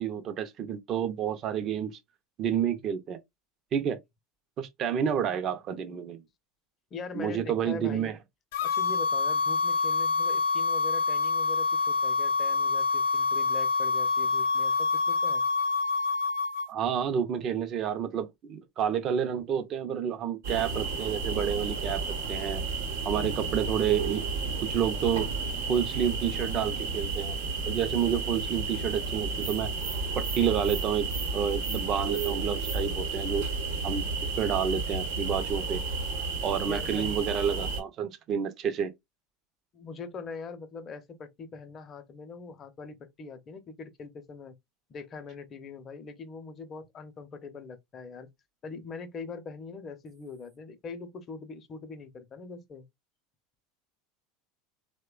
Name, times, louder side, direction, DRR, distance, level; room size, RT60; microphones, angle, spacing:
voice 1, 0.0-2.0 2.4-3.2 3.7-4.0 4.6-6.2 7.1-8.2 16.7-22.6 23.0-25.3 25.7-27.4 27.7-29.7 30.1-33.5 33.8-34.1 34.4-35.8 36.4-38.9, right 8 dB, 45° right, 0.5 m, -29 dB
voice 2, 6.9-8.2 8.6-15.4 23.1-23.5 36.7-37.2 39.7-44.6 44.9-48.3 48.6-52.8, left 4 dB, 40° left, 0.6 m, -42 dB
sound 1, 8.5-16.7, left 4 dB, 75° left, 0.6 m, -26 dB
sound 2, 20.4-37.8, right 4 dB, 75° right, 0.8 m, -32 dB
2.9 x 2.1 x 2.3 m
hypercardioid pair, 90°, 0 cm